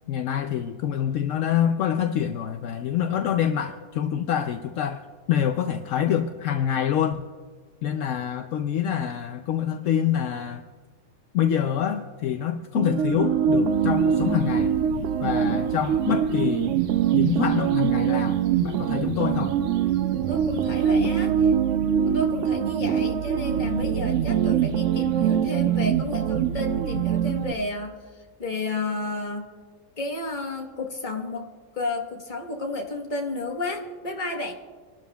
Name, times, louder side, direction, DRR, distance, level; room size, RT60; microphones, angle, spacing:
voice 1, 0.1-5.0 5.3-7.3 7.8-10.6 11.3-14.7 15.2-16.8 17.1-19.6, left 9 dB, 70° left, 7 dB, 0.9 m, -26 dB
sound 1, 12.8-27.5, right 8 dB, 70° right, 0.9 m, -23 dB
voice 2, 20.3-21.5 22.0-28.0 28.4-29.5 30.0-34.5, left 2 dB, 35° left, 2 dB, 1.4 m, -32 dB
29.0 x 12.5 x 2.3 m, 1.5 s
omnidirectional pair, 1.4 m